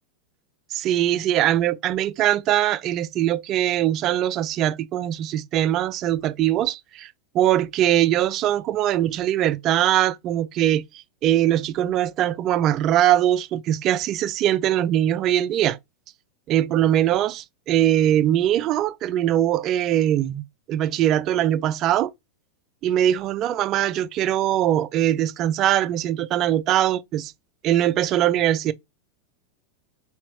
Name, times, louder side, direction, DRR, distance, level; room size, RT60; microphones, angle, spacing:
voice 1, 0.7-10.8 11.2-15.8 16.5-22.1 22.8-27.3 27.6-28.7, right 12 dB, 35° right, 0.3 m, -21 dB
3.4 x 3.1 x 3.1 m
supercardioid pair, 145°, 0 cm